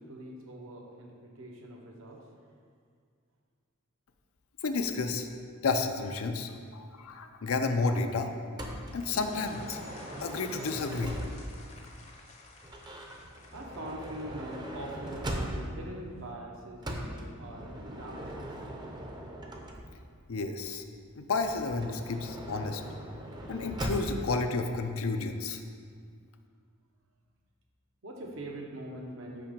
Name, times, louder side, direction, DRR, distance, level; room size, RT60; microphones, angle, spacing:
voice 1, 0.0-2.3 6.7-6.8 13.5-18.5 28.0-29.5, right 1 dB, 65° right, 0 dB, 1.0 m, -43 dB
voice 2, 4.6-5.3 5.6-8.3 8.9-9.8 10.2-11.2 20.3-20.8 21.1-22.8 23.5-25.6, left 3 dB, 75° left, 6 dB, 0.5 m, -31 dB
Motor vehicle (road) / Sliding door, 8.6-11.7 12.6-15.9 16.8-20.1 21.3-24.3, right 1 dB, 20° right, 0.7 m, -40 dB
sound 1, 8.9-14.9, left 2 dB, 30° left, 0.7 m, -50 dB
5.8 x 4.9 x 5.2 m, 2.1 s
head